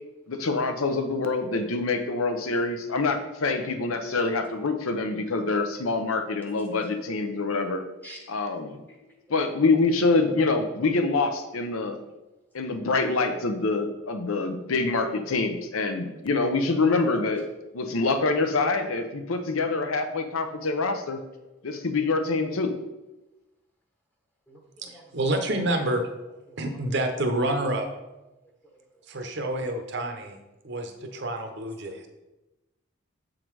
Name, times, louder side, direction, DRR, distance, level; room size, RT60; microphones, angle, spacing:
voice 1, 0.3-7.8 8.3-8.8 9.3-12.0 12.5-17.4 17.7-21.2 21.6-22.7, left 3 dB, 80° left, 7 dB, 0.7 m, -25 dB
voice 2, 8.9-9.5 16.1-16.2 21.4-21.7 24.5-25.2 26.5-26.7 28.6-29.0, right 1 dB, 10° left, -1 dB, 0.9 m, -51 dB
voice 3, 24.8-26.0 26.6-27.9 29.1-30.4 30.6-32.1, right 1 dB, 55° right, 6 dB, 0.8 m, -28 dB
7.5 x 3.8 x 4.6 m, 1.0 s
head